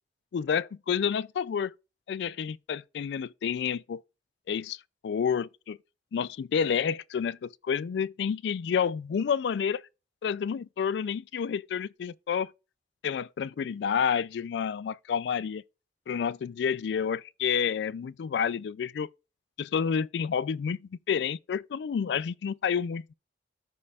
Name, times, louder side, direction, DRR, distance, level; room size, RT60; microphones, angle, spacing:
voice 1, 0.3-1.7 2.1-4.0 4.5-5.8 6.1-9.8 10.2-12.5 13.0-15.6 16.1-19.1 19.6-20.8 21.1-23.1, left 7 dB, 70° left, 0.3 m, -29 dB
14.0 x 5.3 x 2.4 m
head